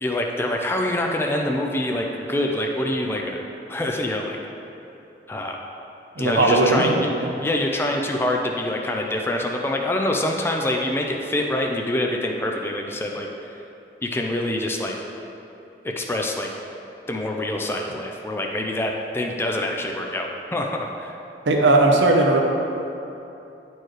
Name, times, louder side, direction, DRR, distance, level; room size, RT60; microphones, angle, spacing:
voice 1, 0.0-3.4 3.7-4.4 5.3-5.6 6.2-7.1 7.4-13.3 14.0-15.0 15.8-16.5 17.1-21.2, left 1 dB, 15° left, 1 dB, 0.4 m, -25 dB
voice 2, 6.2-7.3 21.4-22.4, right 2 dB, 75° right, 1 dB, 0.8 m, -18 dB
10.0 x 4.5 x 3.2 m, 2.9 s
head